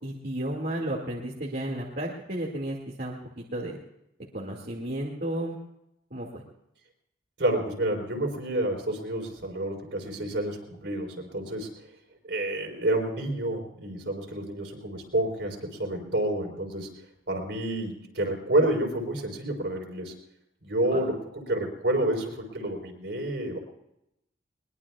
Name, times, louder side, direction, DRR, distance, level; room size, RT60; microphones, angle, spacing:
voice 1, 0.0-3.8 4.3-5.6 6.1-6.4 20.9-21.1, right 1 dB, 50° right, -4 dB, 2.2 m, -33 dB
voice 2, 7.4-11.7 12.2-16.9 17.3-20.1 20.6-23.6, right 1 dB, 70° right, 2 dB, 4.2 m, -29 dB
22.0 x 21.5 x 2.4 m, 0.82 s
head